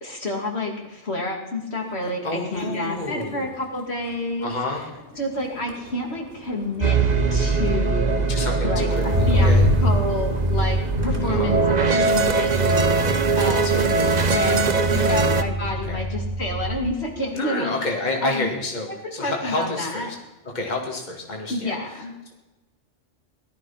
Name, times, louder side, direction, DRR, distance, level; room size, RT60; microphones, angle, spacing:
voice 1, 0.0-2.2 2.5-4.5 5.2-7.0 7.3-8.2 8.6-9.5 9.8-13.8 14.3-17.8 18.2-18.5 19.0-20.1 21.5-22.1, left 1 dB, 60° left, 1 dB, 2.8 m, -29 dB
Motor vehicle (road), 1.9-2.2 2.5-17.0 17.4-17.8, equal, 60° right, 4.1 m, -27 dB
voice 2, 2.2-3.5 4.4-4.9 8.3-9.7 11.2-11.6 13.5-15.2 15.8-16.0 17.3-20.2 20.5-22.0, left 2 dB, 35° left, 1 dB, 2.3 m, -30 dB
sound 1, 6.8-15.4, right 4 dB, 40° right, 0.8 m, -21 dB
18.5 x 12.5 x 5.8 m, 1.1 s
omnidirectional pair, 1.3 m